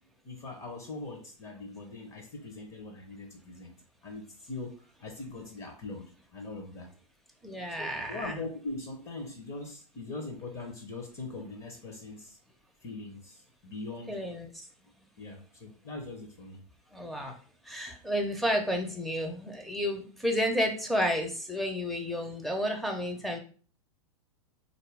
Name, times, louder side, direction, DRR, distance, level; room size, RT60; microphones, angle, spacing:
voice 1, 0.2-3.8 4.0-6.9 7.8-12.4 12.8-14.2 15.2-16.6, left 3 dB, 30° left, 3 dB, 0.9 m, -41 dB
voice 2, 7.4-8.4 14.1-14.7 16.9-17.4 17.6-23.4, equal, ahead, 3 dB, 0.7 m, -31 dB
4.1 x 2.6 x 3.4 m, 0.39 s
figure-of-eight pair, 100°, 18 cm